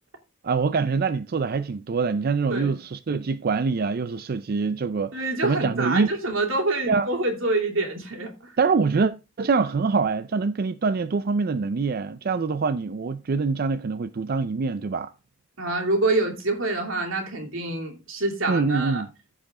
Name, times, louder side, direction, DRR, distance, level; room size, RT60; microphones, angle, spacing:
voice 1, 0.4-6.1 6.9-7.1 8.6-9.1 9.4-15.1 18.5-19.1, right 4 dB, 45° right, 0.4 m, -24 dB
voice 2, 5.1-8.5 15.6-19.0, right 2 dB, 80° right, 2.7 m, -26 dB
15.0 x 5.0 x 3.7 m
head